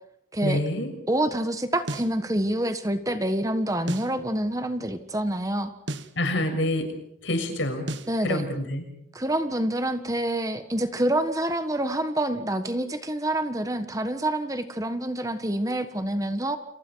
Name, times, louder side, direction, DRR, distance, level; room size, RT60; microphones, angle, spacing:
voice 1, 0.4-0.9 6.1-6.9 7.2-7.9 8.2-8.9, left 1 dB, 75° left, 5 dB, 6.6 m, -26 dB
voice 2, 1.1-5.7 8.1-8.4 9.1-16.6, right 1 dB, 15° right, 9 dB, 1.4 m, -27 dB
sound 1, 1.9-2.2 3.9-4.2 5.9-6.2 7.9-8.2, right 1 dB, 65° right, 1.5 m, -33 dB
30.0 x 28.5 x 4.7 m, 0.77 s
head